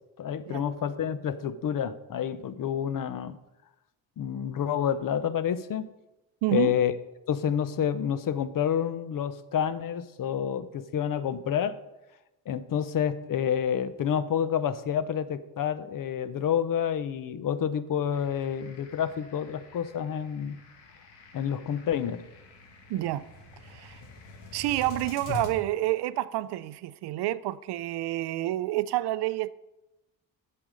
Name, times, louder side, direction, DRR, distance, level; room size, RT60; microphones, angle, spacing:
voice 1, 0.2-3.4 4.2-5.9 6.5-6.9 7.3-11.8 12.5-20.6 21.3-22.2 25.3-25.4, left 8 dB, 50° left, 0.8 m, -29 dB
voice 2, 6.4-6.8 22.9-23.3 23.6-24.0 24.5-29.5, right 15 dB, 70° right, 0.6 m, -29 dB
sound 1, 18.1-25.5, left 4 dB, 75° left, 1.9 m, -48 dB
8.5 x 6.8 x 6.3 m
cardioid pair, 85°, 42 cm